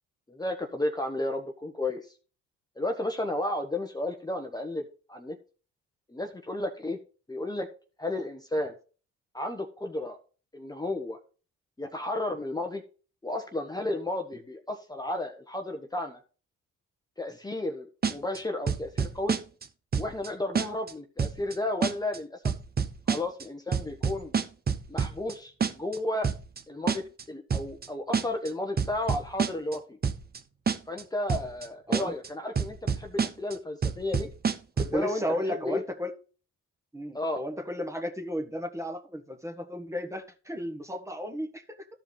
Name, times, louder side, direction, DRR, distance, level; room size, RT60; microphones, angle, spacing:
voice 1, 0.3-2.1 2.8-5.4 6.1-7.0 7.3-7.7 8.0-8.7 9.3-10.2 10.5-11.2 11.8-12.8 13.2-16.2 17.2-19.3 20.0-22.4 23.1-24.3 24.9-26.3 26.7-30.0 30.9-34.3 34.9-35.2 35.5-35.8 37.1-37.4, left 1 dB, 15° left, 1.1 m, -33 dB
sound 1, 18.0-18.4 18.7-19.7 19.9-20.3 20.6-20.9 21.2-21.5 21.8-22.2 22.5-23.4 23.7-25.3 25.6-26.0 26.2-26.6 26.9-27.2 27.5-27.9 28.1-28.5 28.8-29.8 30.0-30.4 30.7-31.0 31.3-31.7 31.9-32.3 32.6-33.5 33.8-35.0, right 6 dB, 30° right, 0.9 m, -27 dB
voice 2, 34.8-36.1 36.9-41.9, equal, 10° right, 1.5 m, -34 dB
13.5 x 5.0 x 4.0 m
cardioid pair, 90°, 30 cm